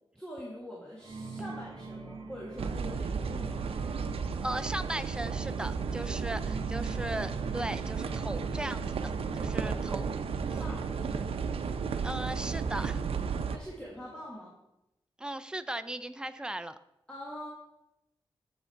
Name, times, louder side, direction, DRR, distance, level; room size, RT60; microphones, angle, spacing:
voice 1, 0.1-3.7 9.5-9.9 10.5-10.8 13.5-14.6 17.1-17.5, equal, 10° left, -4 dB, 1.4 m, -44 dB
sound 1, 1.0-14.3, right 3 dB, 55° right, 2.2 m, -47 dB
sound 2, 2.6-13.6, right 5 dB, 90° right, 0.6 m, -33 dB
voice 2, 4.4-9.0 9.3-10.1 10.5-10.6 12.0-13.0 15.2-16.8, right 1 dB, 10° right, 11 dB, 0.4 m, -37 dB
8.2 x 6.9 x 4.4 m, 0.88 s
wide cardioid pair, 165°, 10 cm